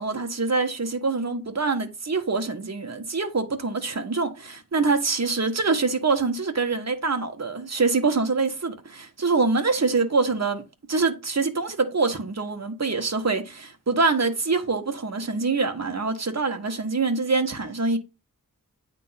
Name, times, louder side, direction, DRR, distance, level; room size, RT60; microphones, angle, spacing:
voice 1, 0.0-10.6 10.9-18.0, right 4 dB, 50° right, 1.4 m, -25 dB
9.1 x 3.7 x 5.7 m
wide cardioid pair, 60°, 33 cm